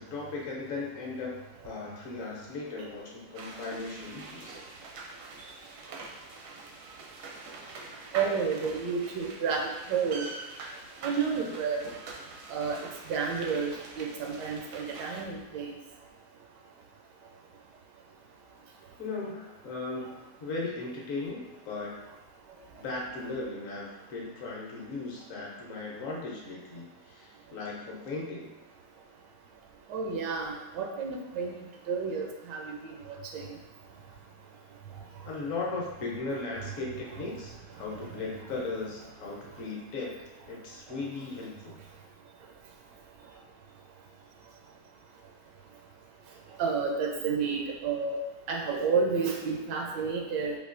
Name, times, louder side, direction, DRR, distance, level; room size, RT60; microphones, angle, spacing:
voice 1, 0.0-1.3 1.6-4.6 19.0-22.0 22.7-28.5 35.2-40.2 40.5-41.7, left 3 dB, 60° left, -3 dB, 1.0 m, -37 dB
sound 1, 3.3-15.2, right 3 dB, 70° right, 0.8 m, -44 dB
voice 2, 8.1-10.3 11.0-11.9 12.5-12.8 13.1-15.8 29.9-31.5 31.9-33.6 37.2-37.3 46.6-48.2 48.5-50.6, right 5 dB, 90° right, 0 dB, 1.2 m, -31 dB
4.4 x 2.4 x 2.5 m, 1.1 s
omnidirectional pair, 1.8 m